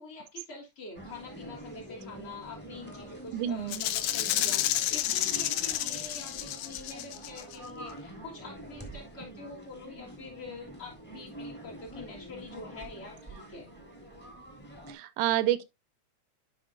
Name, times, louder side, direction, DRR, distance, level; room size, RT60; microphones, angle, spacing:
voice 1, 0.0-13.7, left 3 dB, 50° left, 2.7 m, -45 dB
sound 1, 0.9-14.9, right 1 dB, 5° left, 0.9 m, -46 dB
voice 2, 3.3-3.9 14.9-15.6, right 13 dB, 90° right, 2.2 m, -29 dB
Rattle (instrument), 3.7-7.6, left 12 dB, 75° left, 1.7 m, -30 dB
10.5 x 5.0 x 2.6 m
omnidirectional pair, 3.5 m